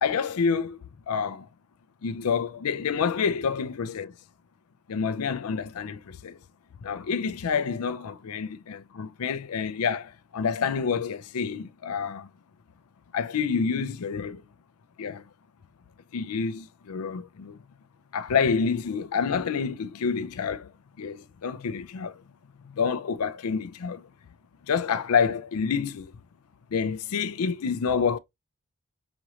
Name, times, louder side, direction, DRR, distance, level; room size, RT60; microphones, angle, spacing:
voice 1, 0.0-0.8 1.1-1.4 2.0-4.1 4.9-6.4 6.8-12.3 13.1-14.4 15.0-15.2 16.1-17.6 18.1-20.7 21.0-22.2 22.6-24.0 24.7-26.1 26.7-28.2, left 6 dB, 70° left, 0.5 m, -28 dB
5.0 x 3.1 x 2.8 m
head